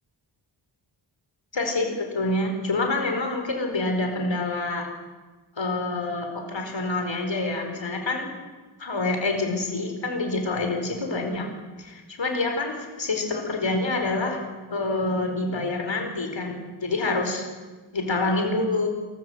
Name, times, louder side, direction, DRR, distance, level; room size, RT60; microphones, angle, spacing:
voice 1, 1.5-4.9 5.6-8.3 8.8-11.5 11.8-14.4 14.7-17.4 17.9-18.9, left 2 dB, 65° left, 3 dB, 4.8 m, -27 dB
28.5 x 14.5 x 8.1 m, 1.3 s
wide cardioid pair, 60°, 49 cm